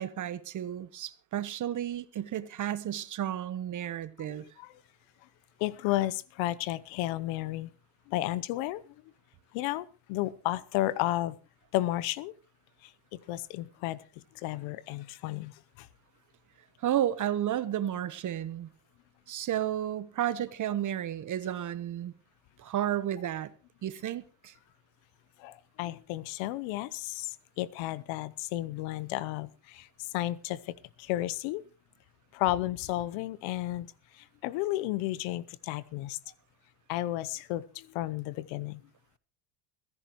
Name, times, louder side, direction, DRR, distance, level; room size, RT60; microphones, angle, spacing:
voice 1, 0.0-4.4 16.8-18.7 19.3-22.1 22.6-23.5 23.8-24.5, right 11 dB, 35° right, 1.1 m, -32 dB
voice 2, 4.3-4.7 5.6-7.7 8.1-8.8 9.5-11.4 11.7-12.3 13.3-14.0 14.4-15.5 15.8-15.9 25.4-29.9 30.1-31.6 32.3-33.9 34.4-36.2 36.9-38.8, left 16 dB, 65° left, 0.9 m, -32 dB
29.0 x 11.0 x 3.1 m
supercardioid pair, 95°, 49 cm